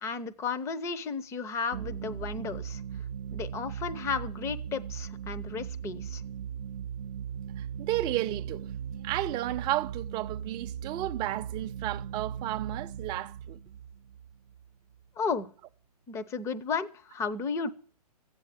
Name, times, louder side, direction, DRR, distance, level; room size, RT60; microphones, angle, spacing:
voice 1, 0.0-2.8 3.3-6.2 15.2-15.5 16.1-17.7, left 5 dB, 15° left, 0.7 m, -33 dB
sound 1, 1.7-15.0, right 8 dB, 75° right, 0.6 m, -38 dB
voice 2, 7.6-8.7 9.0-13.6, right 15 dB, 20° right, 0.7 m, -33 dB
14.0 x 9.1 x 9.0 m
hypercardioid pair, 145°, 20 cm